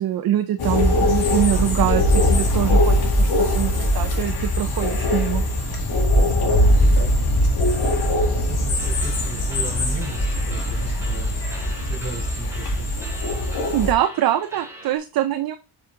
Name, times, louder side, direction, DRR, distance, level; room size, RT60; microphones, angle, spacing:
voice 1, 0.0-5.4 13.7-15.6, right 12 dB, 60° right, 9 dB, 0.6 m, -24 dB
sound 1, 0.6-13.9, left 1 dB, 60° left, 2.1 m, -20 dB
voice 2, 7.9-12.9, right 4 dB, 35° right, 1 dB, 3.7 m, -36 dB
sound 2, 8.8-15.0, right 1 dB, 5° right, 2.5 m, -42 dB
7.3 x 5.0 x 3.7 m, 0.32 s
cardioid pair, 150°, 42 cm